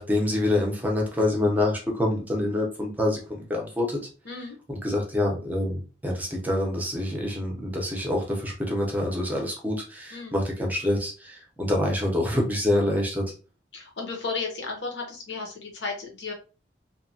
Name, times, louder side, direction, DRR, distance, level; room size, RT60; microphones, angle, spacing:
voice 1, 0.0-4.0 4.7-13.2, left 1 dB, 10° right, 0 dB, 0.6 m, -26 dB
voice 2, 4.2-4.6 10.1-10.4 13.7-16.3, left 4 dB, 75° left, 1 dB, 0.9 m, -34 dB
2.7 x 2.2 x 2.6 m, 0.35 s
head